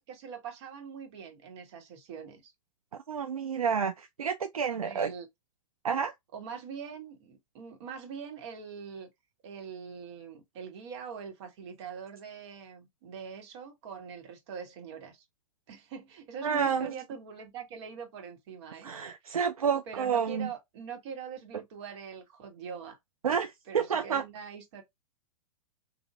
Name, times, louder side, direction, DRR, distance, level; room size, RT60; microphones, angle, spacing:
voice 1, 0.0-2.5 4.7-5.3 6.3-9.1 9.4-15.2 15.7-18.9 19.2-19.4 19.9-23.0 23.7-24.8, right 6 dB, 50° right, 1.5 m, -43 dB
voice 2, 3.1-5.1 5.8-6.1 16.4-16.9 18.8-20.5 23.2-24.2, right 6 dB, 80° right, 0.5 m, -29 dB
3.9 x 2.7 x 2.2 m
figure-of-eight pair, 105°, 18 cm